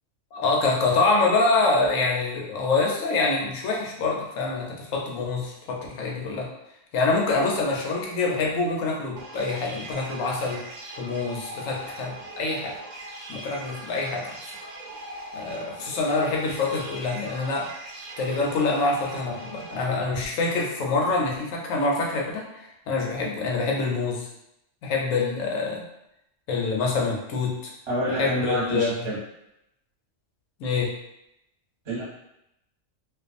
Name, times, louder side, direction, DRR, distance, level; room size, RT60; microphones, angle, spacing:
voice 1, 0.3-6.5 6.9-10.6 11.0-12.8 13.3-14.4 15.3-17.7 18.2-24.3 24.8-25.8 26.5-27.7 28.1-29.1 30.6-30.9, left 3 dB, 85° left, -1 dB, 1.0 m, -26 dB
sound 1, 9.2-19.8, right 1 dB, 80° right, 0.9 m, -40 dB
voice 2, 27.9-29.2 31.8-32.0, right 1 dB, 25° right, -7 dB, 0.9 m, -27 dB
2.5 x 2.3 x 2.5 m, 0.83 s
omnidirectional pair, 1.3 m